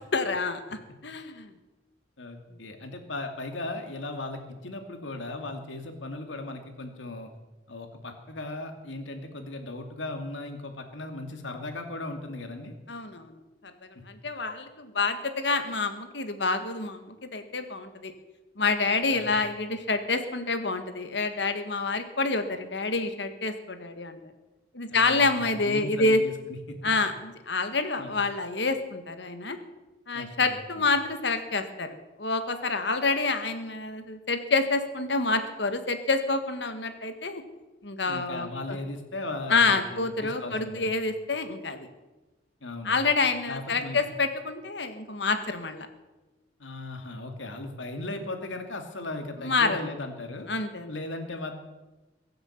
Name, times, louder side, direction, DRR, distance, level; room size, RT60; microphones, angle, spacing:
voice 1, 0.1-1.5 12.9-13.3 14.1-18.1 18.6-24.2 24.7-26.2 26.8-29.6 30.1-37.4 37.8-38.8 39.5-41.9 42.8-45.9 49.4-49.8 50.5-50.9, left 3 dB, 65° left, 8 dB, 1.7 m, -27 dB
voice 2, 2.2-7.3 7.7-12.7 19.1-19.4 24.9-26.9 28.0-28.2 30.1-30.9 38.0-40.8 42.6-43.0 43.5-44.0 46.6-50.5 50.9-51.5, left 2 dB, 85° left, 5 dB, 2.4 m, -37 dB
22.5 x 7.9 x 7.3 m, 1.1 s
head